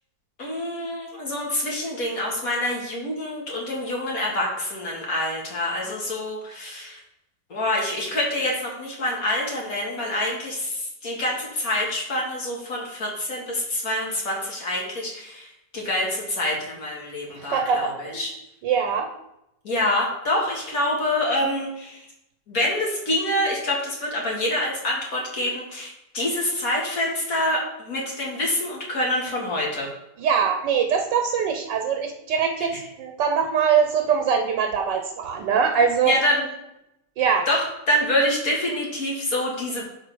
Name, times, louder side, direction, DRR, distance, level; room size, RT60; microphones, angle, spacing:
voice 1, 0.4-7.0 7.5-18.3 19.6-22.0 22.5-29.9 36.1-36.5 37.5-37.6 37.9-39.9, left 1 dB, 50° left, -2 dB, 2.4 m, -26 dB
voice 2, 17.3-18.2 18.6-19.1 30.2-36.2 37.2-37.5, right 6 dB, 75° right, 4 dB, 1.5 m, -23 dB
9.5 x 3.6 x 6.2 m, 0.84 s
omnidirectional pair, 2.0 m